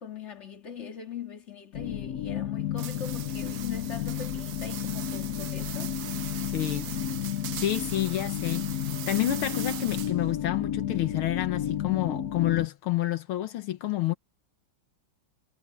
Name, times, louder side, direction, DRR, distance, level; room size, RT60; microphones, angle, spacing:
voice 1, 0.0-5.9, left 7 dB, 35° left, 2.5 m, -41 dB
sound 1, 1.7-12.7, left 10 dB, 65° left, 1.0 m, -32 dB
sound 2, 2.8-10.3, right 11 dB, 65° right, 1.0 m, -40 dB
voice 2, 6.5-7.0 7.5-14.1, left 14 dB, 80° left, 1.8 m, -29 dB
omnidirectional pair, 2.3 m